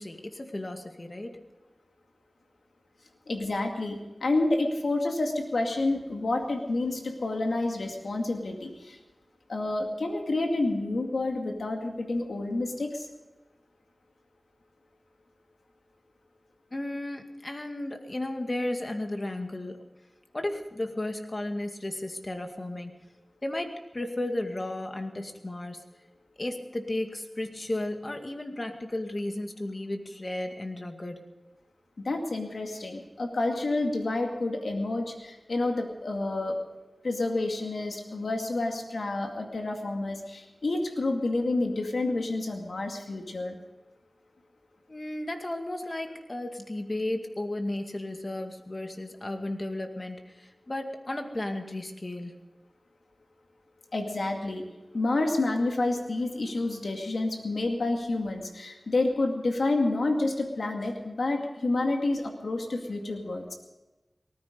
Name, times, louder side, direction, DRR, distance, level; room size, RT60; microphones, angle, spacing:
voice 1, 0.0-1.4 16.7-19.8 20.3-22.9 23.4-25.8 26.4-31.3 44.9-52.3, left 1 dB, 40° left, 5 dB, 2.2 m, -34 dB
voice 2, 3.3-9.0 9.5-12.9 32.0-36.5 37.0-43.6 53.9-54.6 54.9-63.4, left 2 dB, 85° left, 3 dB, 2.2 m, -29 dB
19.0 x 14.5 x 5.2 m, 1.1 s
cardioid pair, 45°, 0 cm